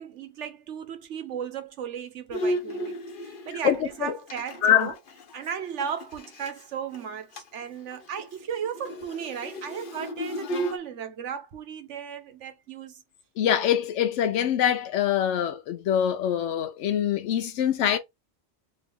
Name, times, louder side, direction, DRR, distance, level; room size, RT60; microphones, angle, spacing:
voice 1, 0.0-4.9 5.3-13.0, right 8 dB, 85° right, 1.2 m, -35 dB
Bowed string instrument, 2.3-6.6 6.9-7.0 7.3-7.6 7.9-10.8, equal, 50° left, 0.8 m, -34 dB
voice 2, 3.6-4.1 4.6-4.9 13.4-18.0, left 10 dB, 90° left, 0.9 m, -24 dB
3.2 x 2.8 x 3.4 m
omnidirectional pair, 1.2 m